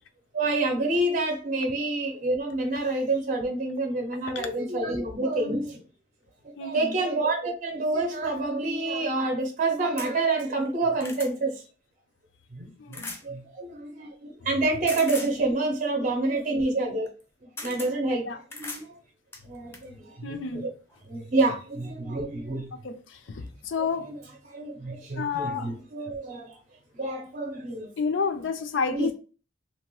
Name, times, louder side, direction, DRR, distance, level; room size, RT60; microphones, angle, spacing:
voice 1, 0.3-5.8 6.4-11.6 12.5-17.1 17.4-18.3 18.5-18.9 19.5-20.7 21.1-22.7 23.8-24.1 24.4-26.6 27.0-27.9 28.9-29.1, right 2 dB, 40° right, 0.5 m, -28 dB
voice 2, 6.6-6.9 12.8-13.1 18.2-18.4 20.2-20.7 22.8-24.1 25.2-25.7 28.0-29.1, left 5 dB, 85° left, 0.4 m, -30 dB
sound 1, 10.0-10.1 10.7-11.3 12.9-13.2 14.9-15.3 17.1-17.2 17.6-17.9 18.5-18.9 19.3-19.9 20.9-21.0 21.4-21.5, left 2 dB, 15° left, 0.4 m, -38 dB
2.8 x 2.2 x 3.0 m
head